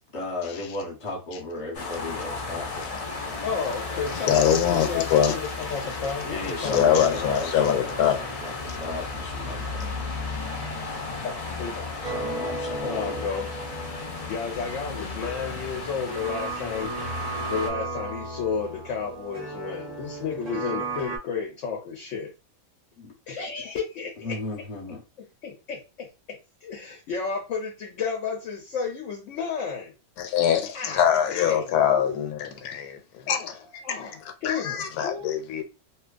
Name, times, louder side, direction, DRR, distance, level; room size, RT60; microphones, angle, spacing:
voice 1, 0.0-2.8 6.2-9.6 12.0-13.3 23.0-23.1 24.2-25.0, left 3 dB, 25° left, 0.9 m, -35 dB
sound 1, 1.7-17.7, left 3 dB, 45° left, 0.5 m, -34 dB
voice 2, 3.4-6.8 7.0-7.2 11.2-11.3 11.6-11.9 12.8-13.5 14.3-17.0 17.5-22.3 23.3-24.4 25.2-29.9 30.7-32.2 33.8-35.4, left 6 dB, 65° left, 0.8 m, -32 dB
voice 3, 4.3-5.3 6.7-8.2 30.2-33.7 34.4-35.6, left 9 dB, 85° left, 1.1 m, -23 dB
sound 2, 12.0-21.2, right 3 dB, 35° right, 0.8 m, -35 dB
2.8 x 2.2 x 2.4 m
omnidirectional pair, 1.5 m